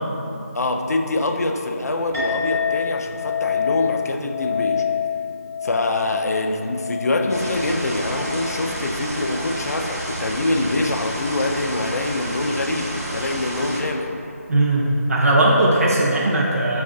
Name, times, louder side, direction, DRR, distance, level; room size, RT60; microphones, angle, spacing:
voice 1, 0.5-4.9 5.6-14.1, left 2 dB, 75° left, 4 dB, 0.4 m, -24 dB
Chink clink, 2.1-10.8, left 7 dB, 5° right, 0.4 m, -28 dB
sound 1, 7.3-13.8, right 1 dB, 80° right, 1.1 m, -30 dB
voice 2, 14.5-16.8, right 1 dB, 65° right, -4 dB, 0.5 m, -18 dB
4.3 x 2.4 x 3.6 m, 2.9 s
figure-of-eight pair, 175°, 9 cm